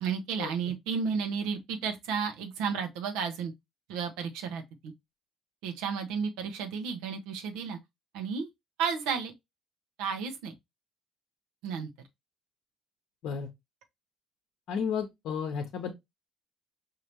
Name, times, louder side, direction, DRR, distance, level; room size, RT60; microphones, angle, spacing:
voice 1, 0.0-3.5 3.9-4.9 5.6-7.8 8.1-8.5 8.8-9.3 10.0-10.5 11.6-11.9, right 6 dB, 80° right, 0.8 m, -32 dB
voice 2, 14.7-15.9, left 7 dB, 65° left, 0.8 m, -32 dB
5.3 x 2.8 x 2.9 m
hypercardioid pair, 60°, 0 cm